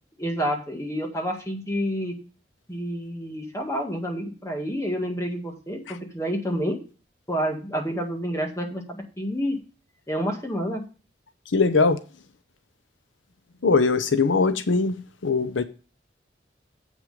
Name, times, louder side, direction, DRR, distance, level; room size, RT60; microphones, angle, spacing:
voice 1, 0.2-2.2 2.7-6.8 7.3-9.6 10.1-10.8, equal, 15° left, 1.9 m, -29 dB
voice 2, 11.5-12.0 13.6-15.6, left 4 dB, 90° left, 0.7 m, -21 dB
7.9 x 6.1 x 5.0 m
head